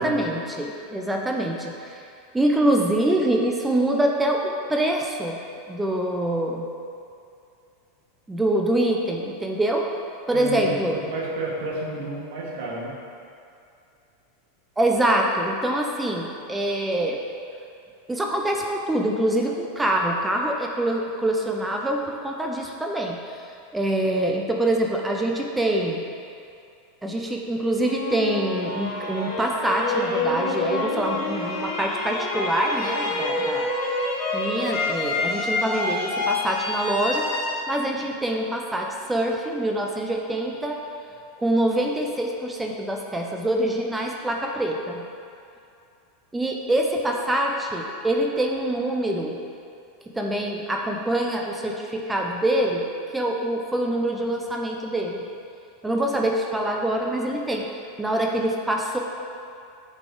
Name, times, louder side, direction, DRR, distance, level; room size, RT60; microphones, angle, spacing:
voice 1, 0.0-2.0 2.3-5.4 5.7-6.7 8.3-9.8 10.3-11.0 14.8-17.2 18.1-26.0 27.0-33.7 34.3-37.3 37.7-40.8 41.4-45.1 46.3-49.4 50.1-52.9 53.1-55.3 55.8-57.7 58.0-59.0, right 1 dB, 10° right, 0 dB, 0.6 m, -25 dB
voice 2, 10.3-12.9, right 2 dB, 75° right, -4 dB, 1.6 m, -31 dB
sound 1, 27.8-38.8, left 2 dB, 45° left, 1.4 m, -27 dB
8.5 x 4.1 x 3.8 m, 2.5 s
supercardioid pair, 125°, 0 cm